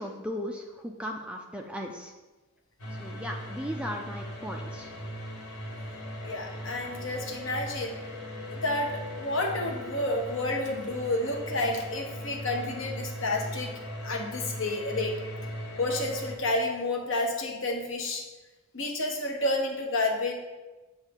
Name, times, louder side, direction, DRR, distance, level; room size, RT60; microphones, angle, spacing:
voice 1, 0.0-2.1 3.0-4.9, equal, 5° right, 1 dB, 0.3 m, -37 dB
sound 1, 2.8-16.4, equal, 80° left, 1.3 m, -39 dB
voice 2, 6.2-8.0 8.4-13.7 14.0-15.1 15.8-18.2 18.7-20.3, left 2 dB, 60° left, 2 dB, 0.9 m, -30 dB
8.0 x 2.7 x 5.2 m, 1.2 s
head